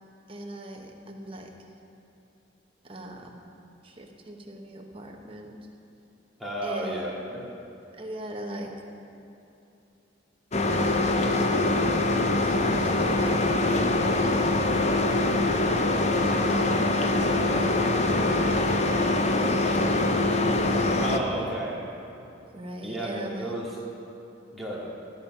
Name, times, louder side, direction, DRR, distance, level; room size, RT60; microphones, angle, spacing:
voice 1, 0.3-1.5 2.8-3.5 3.8-5.6 6.6-7.2 7.9-8.7 10.7-14.5 14.9-15.7 16.1-19.7 20.6-21.2 22.5-23.5, right 1 dB, 30° right, 1 dB, 1.1 m, -40 dB
voice 2, 6.4-7.4 21.0-21.8 22.8-23.8 24.5-24.9, right 1 dB, ahead, -6 dB, 2.1 m, -32 dB
sound 1, 10.5-21.2, left 2 dB, 35° left, 0.6 m, -23 dB
13.5 x 8.4 x 5.6 m, 2.9 s
head